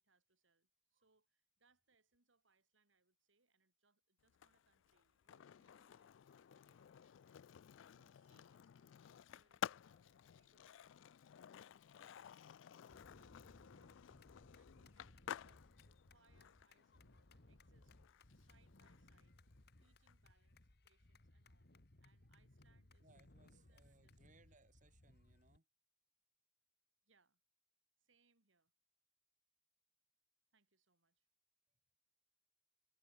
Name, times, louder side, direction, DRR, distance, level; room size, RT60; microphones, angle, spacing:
voice 1, 0.0-7.4 7.9-11.6 12.0-14.3 14.5-15.5 15.9-17.9 18.3-19.4 19.8-21.7 22.0-23.1 23.4-24.7 27.0-27.4 28.0-28.7 30.5-31.3, right 4 dB, 80° right, 3.2 m, -80 dB
Skateboard, 4.3-20.1, left 9 dB, 80° left, 0.4 m, -54 dB
sound 1, 12.9-25.6, left 1 dB, 55° left, 1.9 m, -65 dB
voice 2, 15.3-15.7 23.0-25.7, right 3 dB, 40° right, 3.5 m, -71 dB
head